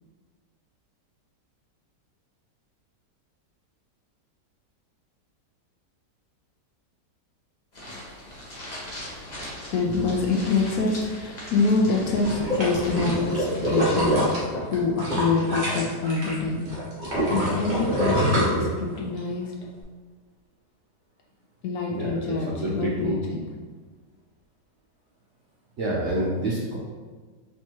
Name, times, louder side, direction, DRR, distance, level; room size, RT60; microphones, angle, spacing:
sound 1, 7.7-14.4, left 1 dB, 30° left, 0.9 m, -40 dB
voice 1, 9.7-14.1 14.7-16.7 17.3-19.5 21.6-23.5, left 4 dB, 70° left, -1 dB, 0.9 m, -26 dB
sound 2, 12.2-16.3 16.7-19.2 19.6-19.7, equal, 30° right, 1.1 m, -25 dB
voice 2, 18.2-18.7 21.9-22.1 22.5-23.2 25.8-26.8, right 1 dB, 70° right, -5 dB, 0.7 m, -27 dB
4.2 x 3.4 x 2.9 m, 1.4 s
omnidirectional pair, 1.9 m